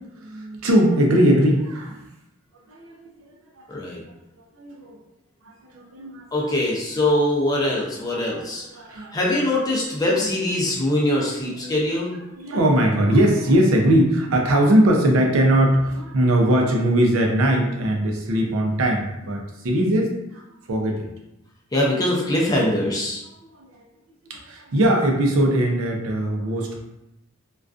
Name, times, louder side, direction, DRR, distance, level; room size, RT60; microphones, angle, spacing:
voice 1, 0.0-2.0 2.7-3.3 4.6-5.0 5.4-6.3 8.1-8.4 8.7-9.1 11.6-11.9 12.4-19.4 19.6-20.4 20.7-21.0 24.3-26.8, right 1 dB, 80° right, 1 dB, 0.5 m, -20 dB
voice 2, 3.7-4.0 6.3-8.6 9.1-12.2 21.7-23.2, left 1 dB, 20° left, -4 dB, 0.4 m, -22 dB
2.4 x 2.3 x 2.3 m, 0.89 s
head